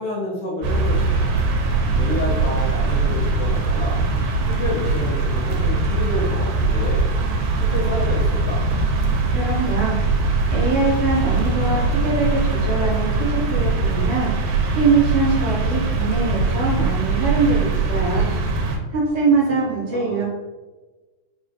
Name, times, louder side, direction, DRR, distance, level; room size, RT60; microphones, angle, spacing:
voice 1, 0.0-1.3 1.9-4.0 4.5-7.1 7.5-8.6 19.5-20.2, left 1 dB, 75° left, -4 dB, 1.3 m, -29 dB
sound 1, 0.6-18.8, right 3 dB, 85° right, 2.1 m, -21 dB
voice 2, 9.3-10.0 10.5-18.3 18.9-20.3, right 3 dB, 70° right, -5 dB, 1.3 m, -22 dB
sound 2, 11.1-13.7, right 1 dB, 50° left, 1.1 m, -41 dB
4.8 x 2.4 x 2.6 m, 1.2 s
omnidirectional pair, 3.4 m